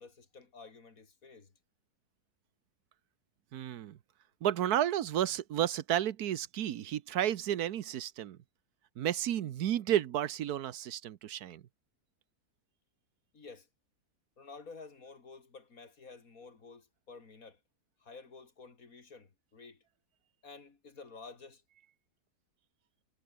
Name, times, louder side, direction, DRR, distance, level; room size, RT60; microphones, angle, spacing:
voice 1, 0.0-1.5 13.3-13.7 14.4-17.6 18.0-19.8 20.4-21.6, left 4 dB, 60° left, 3.0 m, -51 dB
voice 2, 3.5-4.0 4.4-8.4 9.0-11.6, right 11 dB, 75° right, 1.3 m, -32 dB
omnidirectional pair, 1.6 m